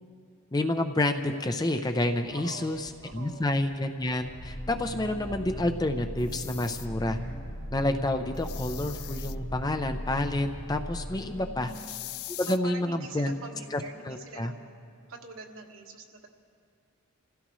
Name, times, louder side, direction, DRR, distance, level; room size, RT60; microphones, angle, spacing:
voice 1, 0.5-2.8 3.1-7.2 7.7-11.7 12.3-13.3 13.7-14.5, left 1 dB, 15° left, 6 dB, 0.5 m, -29 dB
sound 1, 2.1-11.6, equal, 45° right, 1.3 m, -53 dB
voice 2, 2.3-3.6 11.1-12.0 12.4-14.8 15.1-16.3, right 3 dB, 65° right, 2 dB, 1.5 m, -45 dB
sound 2, 4.1-11.9, equal, 55° left, 1.8 m, -38 dB
sound 3, 6.2-6.9 8.4-9.4 11.7-12.6, left 17 dB, 70° left, 0.4 m, -41 dB
27.0 x 16.0 x 3.1 m, 2.5 s
head